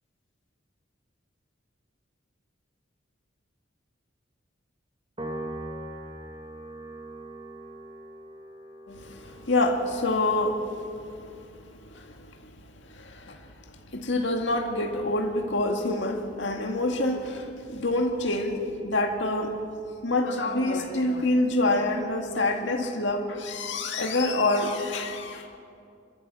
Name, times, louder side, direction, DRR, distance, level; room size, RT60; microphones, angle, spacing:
Piano, 5.2-11.7, right 1 dB, 25° right, 2.2 m, -41 dB
voice 1, 8.9-12.5 12.8-13.5 13.9-19.6 20.0-25.6, left 2 dB, 65° left, 2.0 m, -27 dB
27.5 x 13.5 x 7.6 m
head